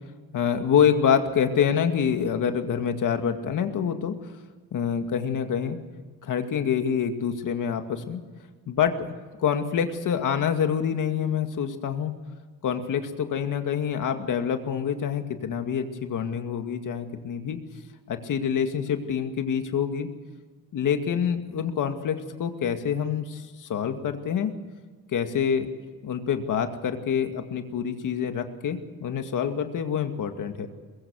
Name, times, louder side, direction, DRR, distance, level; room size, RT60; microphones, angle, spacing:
voice 1, 0.3-4.2 4.7-5.8 6.2-8.2 8.7-8.9 9.4-12.1 12.6-17.6 18.1-20.1 20.7-24.5 25.1-25.7 26.0-30.7, left 7 dB, 65° left, 6 dB, 2.2 m, -26 dB
22.5 x 22.0 x 6.4 m, 1.4 s
wide cardioid pair, 175°, 35 cm